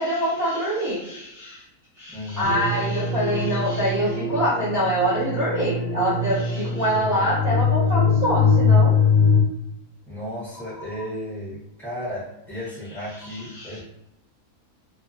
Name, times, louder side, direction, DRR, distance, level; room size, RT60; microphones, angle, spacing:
voice 1, 0.0-1.6 2.0-9.0 11.0-11.1 13.1-13.8, equal, 40° right, -9 dB, 0.7 m, -25 dB
voice 2, 2.1-2.5 10.1-13.8, equal, 5° left, -9 dB, 0.4 m, -34 dB
sound 1, 2.4-9.4, left 4 dB, 70° left, 0.8 m, -22 dB
2.3 x 2.2 x 2.4 m, 0.85 s
omnidirectional pair, 1.6 m